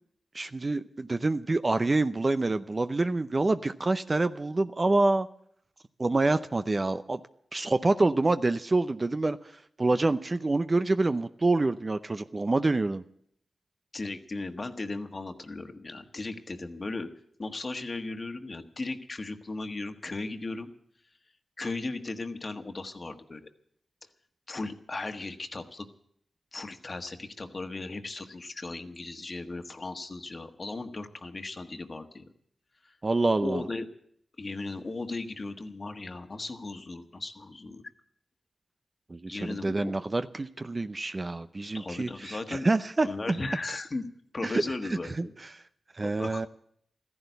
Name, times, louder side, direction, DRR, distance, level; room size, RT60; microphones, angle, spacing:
voice 1, 0.3-5.3 6.0-7.2 7.5-9.5 9.8-13.0 33.0-33.6 39.1-43.4 44.4-44.6 44.9-45.0 45.9-46.5, right 2 dB, 35° right, 10 dB, 0.6 m, -27 dB
voice 2, 13.9-17.1 17.4-20.7 21.6-23.5 24.5-25.9 26.5-32.2 32.8-33.0 33.4-33.9 34.4-37.8 39.3-40.0 41.7-42.7 43.0-44.1 44.3-45.3 46.0-46.5, left 3 dB, 45° left, 7 dB, 1.4 m, -36 dB
14.0 x 11.0 x 8.1 m, 0.67 s
cardioid pair, 45°, 0 cm